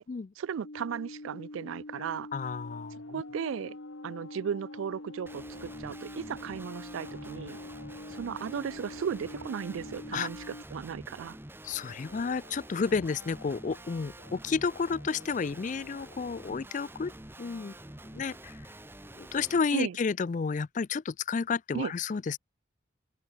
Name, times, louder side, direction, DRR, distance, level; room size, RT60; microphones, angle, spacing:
voice 1, 0.4-2.3 3.1-3.8 4.0-7.6 8.1-10.4 10.7-11.4 19.7-20.0 21.7-21.9, right 7 dB, 80° right, 0.3 m, -35 dB
sound 1, 0.6-10.6, left 1 dB, 60° left, 1.5 m, -45 dB
sound 2, 1.9-18.2, left 4 dB, 90° left, 1.7 m, -57 dB
voice 2, 2.3-3.0 10.1-10.3 11.6-17.7 18.0-18.6 19.1-22.4, left 5 dB, 40° left, 0.3 m, -31 dB
Guitar, 5.3-19.6, right 1 dB, 10° right, 1.4 m, -48 dB
open air
head